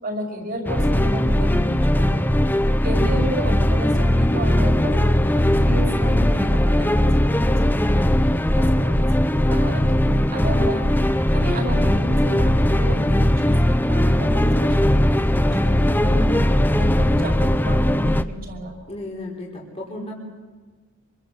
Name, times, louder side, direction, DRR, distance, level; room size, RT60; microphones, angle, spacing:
voice 1, 0.0-2.4 2.8-9.0 9.5-10.9 11.3-16.4 16.7-18.8, equal, 45° right, 1 dB, 5.3 m, -32 dB
sound 1, 0.6-18.2, left 1 dB, 10° left, 0.7 m, -19 dB
voice 2, 18.9-20.1, left 1 dB, 30° left, -3 dB, 4.8 m, -34 dB
27.0 x 25.0 x 7.9 m, 1.4 s
head